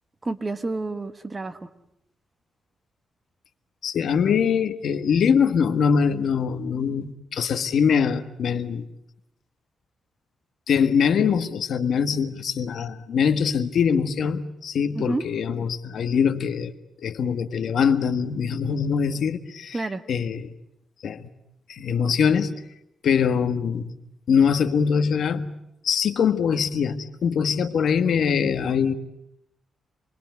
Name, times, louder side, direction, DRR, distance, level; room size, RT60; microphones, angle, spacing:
voice 1, 0.2-1.7 14.9-15.3 19.7-20.0, right 2 dB, 25° right, 10 dB, 1.4 m, -29 dB
voice 2, 3.8-8.9 10.7-16.7 17.0-20.5 21.0-21.3 21.7-22.5 23.0-23.9 24.3-25.5 25.8-28.9, left 6 dB, 70° left, 10 dB, 1.6 m, -23 dB
27.5 x 22.0 x 9.3 m, 0.82 s
wide cardioid pair, 135°, 0 cm